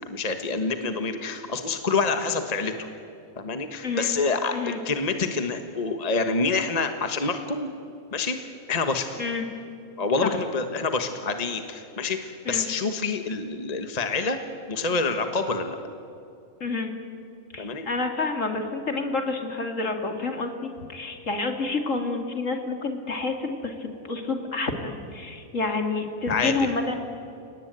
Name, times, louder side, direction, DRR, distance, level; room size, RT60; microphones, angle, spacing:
voice 1, 0.0-2.9 3.4-7.7 8.1-8.4 8.7-9.2 10.0-14.4 14.7-15.8 17.6-17.9 26.3-26.5, left 4 dB, 30° left, 7 dB, 1.5 m, -27 dB
voice 2, 3.8-4.2 4.5-4.8 9.2-9.5 10.2-10.3 12.5-12.7 16.6-16.9 17.5-27.0, left 3 dB, 60° left, 5 dB, 2.8 m, -29 dB
30.0 x 19.0 x 9.1 m, 2.5 s
omnidirectional pair, 1.5 m